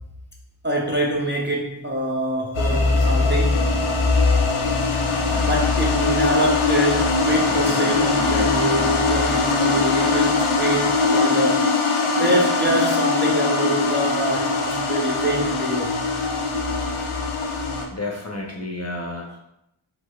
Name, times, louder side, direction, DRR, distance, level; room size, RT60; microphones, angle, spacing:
voice 1, 0.6-3.7 5.3-11.7 12.0-16.0, right 1 dB, 25° right, -2 dB, 0.4 m, -25 dB
sound 1, 2.5-17.8, left 3 dB, 85° left, 0.5 m, -21 dB
sound 2, 6.7-13.7 14.1-14.2 14.6-14.7, left 1 dB, 90° right, 1.3 m, -38 dB
voice 2, 17.9-19.4, left 2 dB, 35° left, -1 dB, 0.6 m, -31 dB
3.1 x 3.0 x 2.3 m, 0.82 s
wide cardioid pair, 40°, 48 cm